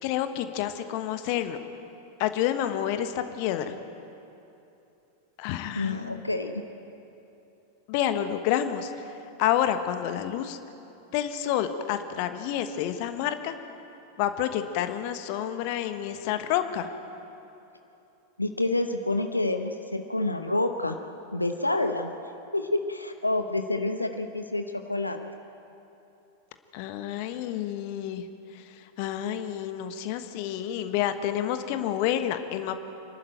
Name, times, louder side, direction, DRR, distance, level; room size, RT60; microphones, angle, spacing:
voice 1, 0.0-1.6 2.2-3.7 5.4-6.2 7.9-9.1 9.4-10.6 11.1-13.5 14.2-16.9 26.7-28.2 28.5-32.8, left 11 dB, 45° left, 9 dB, 1.2 m, -29 dB
voice 2, 5.7-6.6 18.4-21.0 21.3-22.1 22.5-25.2, left 2 dB, 85° left, 6 dB, 1.0 m, -28 dB
27.0 x 12.0 x 9.1 m, 2.9 s
figure-of-eight pair, 90°, 0 cm